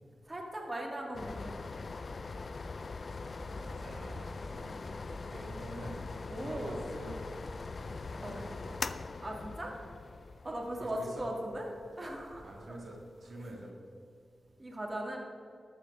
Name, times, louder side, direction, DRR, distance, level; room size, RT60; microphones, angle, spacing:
voice 1, 0.3-1.7 4.4-4.8 6.3-6.8 8.2-8.5 9.2-9.8 10.4-11.7 12.0-12.8 13.4-13.5 14.6-15.2, right 1 dB, 30° right, 0 dB, 1.8 m, -39 dB
sound 1, 1.1-13.6, left 3 dB, 55° left, 0.4 m, -42 dB
sound 2, 3.1-8.8, equal, 5° left, 2.7 m, -53 dB
voice 2, 3.6-4.3 5.1-6.0 6.4-7.3 8.1-8.8 10.8-11.3 12.4-13.0 13.2-13.7, right 1 dB, 70° right, -1 dB, 1.8 m, -46 dB
13.0 x 4.9 x 6.4 m, 2.4 s
cardioid pair, 65°, 0 cm